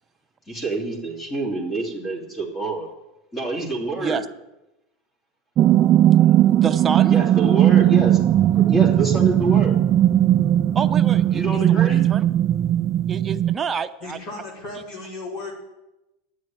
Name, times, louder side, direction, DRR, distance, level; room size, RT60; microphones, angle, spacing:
voice 1, 0.5-2.9 3.3-4.2 7.1-8.2 8.5-9.8 11.3-12.1, right 2 dB, 20° left, -1 dB, 3.1 m, -27 dB
sound 1, 5.6-13.6, right 12 dB, 40° right, 0.3 m, -17 dB
voice 2, 6.5-7.2 10.7-12.2 13.1-14.2, right 6 dB, 25° right, 8 dB, 0.8 m, -28 dB
voice 3, 14.0-15.5, left 2 dB, 55° left, -3 dB, 5.1 m, -35 dB
9.3 x 7.9 x 9.1 m, 0.96 s
hypercardioid pair, 105°, 0 cm